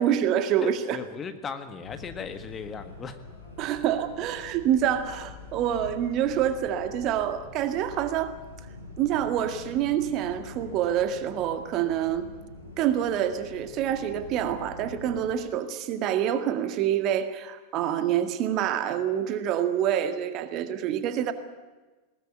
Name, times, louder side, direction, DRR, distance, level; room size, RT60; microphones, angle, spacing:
voice 1, 0.0-1.0 3.6-8.3 9.0-12.3 12.8-21.3, right 10 dB, 40° right, 10 dB, 2.0 m, -26 dB
voice 2, 0.6-3.2, left 6 dB, 20° left, 8 dB, 1.8 m, -37 dB
sound 1, 1.8-15.3, left 3 dB, 80° left, 6.6 m, -45 dB
21.0 x 19.5 x 8.5 m, 1.2 s
figure-of-eight pair, 90°, 0 cm